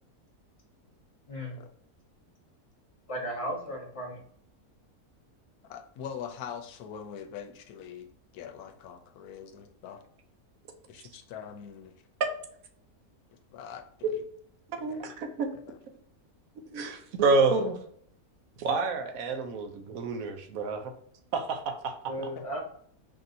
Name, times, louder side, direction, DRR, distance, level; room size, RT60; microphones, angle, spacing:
voice 1, 1.3-1.6 3.1-4.2 22.1-22.6, equal, 25° left, -1 dB, 0.9 m, -35 dB
voice 2, 5.7-8.1 8.3-10.0 10.9-11.9 13.5-13.8 14.1-14.2 14.7-15.0 15.7-15.8 17.3-17.4 22.2-22.4, left 8 dB, 85° left, 6 dB, 1.1 m, -43 dB
voice 3, 14.8-15.5 16.7-17.8 18.6-20.9 21.3-22.1, right 4 dB, 70° right, 5 dB, 1.0 m, -28 dB
5.2 x 2.7 x 2.6 m, 0.64 s
omnidirectional pair, 1.6 m